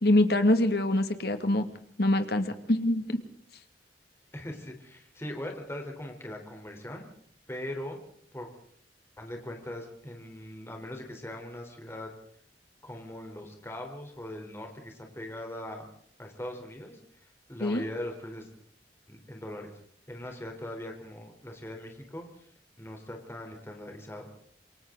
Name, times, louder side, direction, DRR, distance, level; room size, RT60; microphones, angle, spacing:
voice 1, 0.0-1.7 2.0-3.2 17.6-17.8, left 1 dB, 60° left, 8 dB, 2.2 m, -24 dB
voice 2, 4.3-7.1 7.5-8.0 8.3-8.5 9.2-12.1 12.8-15.9 16.2-17.0 17.5-18.5 19.1-19.7 20.1-22.5 22.8-24.3, left 1 dB, 15° left, 2 dB, 3.8 m, -40 dB
28.0 x 24.0 x 3.9 m, 0.63 s
head